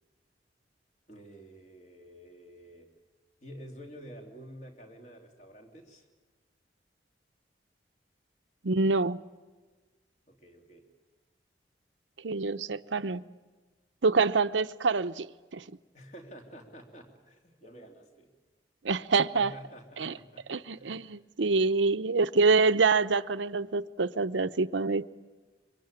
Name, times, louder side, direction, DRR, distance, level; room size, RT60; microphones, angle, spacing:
voice 1, 1.1-2.9 3.4-6.1 10.3-10.9 15.9-18.3 19.3-20.4 20.7-21.2, equal, 40° left, 3.0 m, -49 dB
voice 2, 8.6-9.2 12.2-13.2 14.0-15.3 15.5-15.6 18.8-19.5 20.0-20.1 20.5-25.1, right 4 dB, 90° right, 0.8 m, -26 dB
25.5 x 24.0 x 8.9 m
head